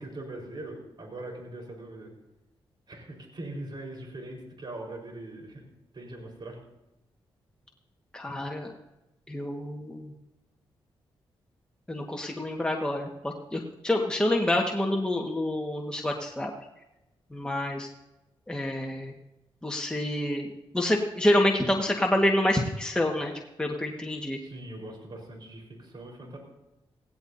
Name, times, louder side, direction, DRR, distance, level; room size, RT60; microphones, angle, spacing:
voice 1, 0.0-2.1 2.9-5.6 5.9-6.6 24.3-26.4, right 2 dB, 50° right, 1 dB, 4.5 m, -41 dB
voice 2, 8.1-8.7 9.3-10.1 11.9-16.5 17.3-17.9 18.5-19.1 19.6-23.3 23.6-24.4, left 1 dB, 10° left, 0 dB, 1.6 m, -27 dB
18.5 x 16.5 x 2.7 m, 0.95 s
cardioid pair, 80°, 10 cm